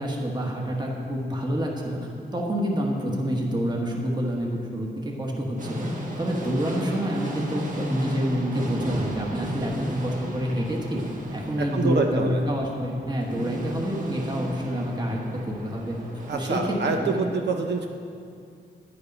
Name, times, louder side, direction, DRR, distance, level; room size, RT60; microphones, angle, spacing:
voice 1, 0.0-11.0 11.3-17.2, equal, 25° right, -1 dB, 1.3 m, -28 dB
sound 1, 5.6-16.7, equal, 45° right, 1.5 m, -34 dB
voice 2, 11.6-12.4 16.3-17.8, right 4 dB, 70° right, 3 dB, 0.7 m, -26 dB
11.0 x 8.5 x 5.3 m, 2.4 s
wide cardioid pair, 125°, 19 cm